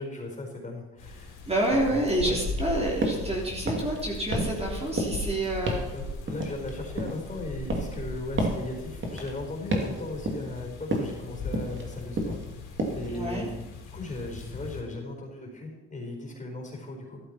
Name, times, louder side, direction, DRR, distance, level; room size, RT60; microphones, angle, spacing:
voice 1, 0.0-1.4 1.7-2.4 4.3-4.4 5.9-12.4 12.9-13.5 13.9-17.2, left 2 dB, 25° left, 0 dB, 4.5 m, -37 dB
sound 1, 1.0-14.8, left 2 dB, 90° left, 3.2 m, -38 dB
voice 2, 1.5-5.8 13.1-13.5, right 1 dB, 20° right, -3 dB, 3.3 m, -28 dB
sound 2, 3.0-3.3 3.6-4.0 4.3-4.7 5.0-5.3 5.7-5.9 6.3-7.3 7.7-8.0 8.4-8.6 9.0-9.3 9.7-10.0 10.3-10.6 10.9-11.2 11.5-11.9 12.2-12.5 12.8-13.1, right 1 dB, 40° right, 2.7 m, -30 dB
13.5 x 12.5 x 4.4 m, 1.1 s
cardioid pair, 90°, 30 cm